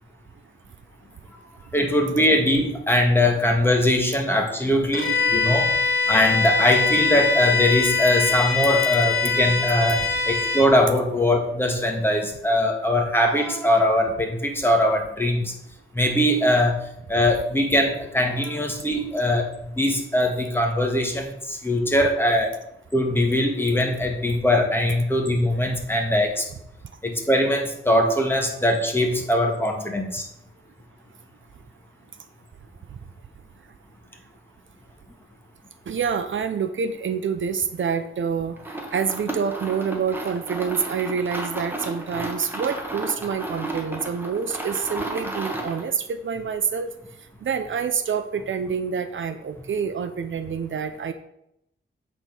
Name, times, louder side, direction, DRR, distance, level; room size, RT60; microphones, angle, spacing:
voice 1, 1.7-5.7 6.1-15.5 15.9-22.5 22.9-26.5 27.0-30.3, left 1 dB, 10° left, 2 dB, 1.5 m, -21 dB
Bowed string instrument, 4.9-10.7, left 5 dB, 70° left, 2.2 m, -22 dB
voice 2, 35.9-46.9 47.4-51.1, right 6 dB, 65° right, 9 dB, 0.6 m, -27 dB
sound 1, 38.6-45.9, right 1 dB, 10° right, 1.4 m, -33 dB
8.2 x 4.3 x 5.4 m, 0.79 s
wide cardioid pair, 105°, 21 cm